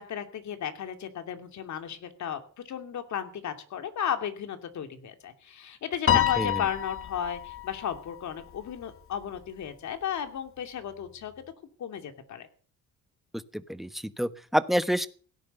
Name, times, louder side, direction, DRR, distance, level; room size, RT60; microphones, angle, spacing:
voice 1, 0.0-11.4 11.8-12.5, left 9 dB, 70° left, 7 dB, 2.7 m, -34 dB
Piano, 6.1-8.6, left 11 dB, 45° left, 1.0 m, -28 dB
voice 2, 13.7-15.1, equal, ahead, 12 dB, 1.2 m, -27 dB
17.0 x 10.5 x 6.8 m, 0.43 s
cardioid pair, 90°, 30 cm